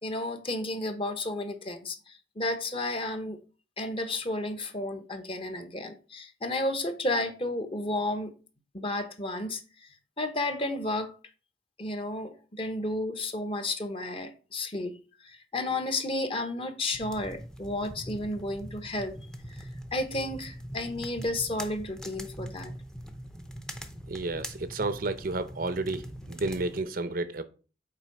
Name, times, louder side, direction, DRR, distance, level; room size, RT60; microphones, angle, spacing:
voice 1, 0.0-3.4 3.8-8.3 8.7-9.6 10.2-11.1 11.8-19.1 19.5-22.7, left 2 dB, 30° left, 0.9 m, -32 dB
sound 1, 16.9-26.8, equal, 5° left, 0.7 m, -42 dB
voice 2, 24.1-27.4, right 2 dB, 50° right, 0.6 m, -31 dB
7.4 x 4.6 x 4.6 m
head